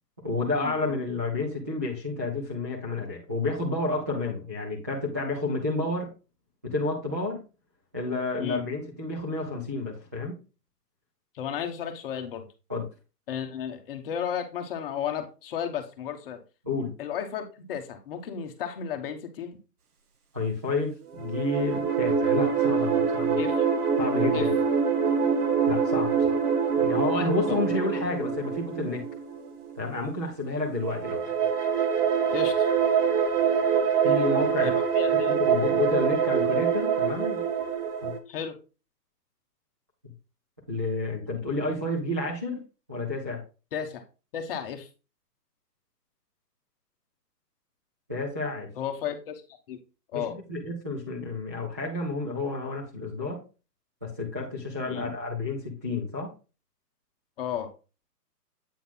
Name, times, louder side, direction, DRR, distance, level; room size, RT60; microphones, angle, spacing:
voice 1, 0.2-6.1 6.6-7.4 7.9-10.4 12.7-12.9 16.7-16.9 20.3-23.4 24.0-24.5 25.7-26.3 26.8-29.0 29.7-31.3 34.0-34.8 35.1-37.4 38.0-38.1 40.7-42.6 42.9-43.4 48.1-48.7 50.1-53.4 54.0-56.3, left 3 dB, 10° right, -8 dB, 0.4 m, -30 dB
voice 2, 11.3-12.5 13.3-16.4 17.0-19.6 23.4-23.7 24.3-24.5 27.5-27.6 32.3-32.7 34.6-35.5 38.3-38.6 43.7-44.0 44.3-44.9 48.8-49.4 49.7-49.8 50.1-50.4 54.9-55.1 57.4-57.7, left 8 dB, 35° left, 6 dB, 1.1 m, -33 dB
sound 1, 21.2-29.8 30.8-38.2, right 6 dB, 65° right, 1.5 m, -25 dB
8.5 x 3.9 x 3.8 m, 0.32 s
hypercardioid pair, 145°, 48 cm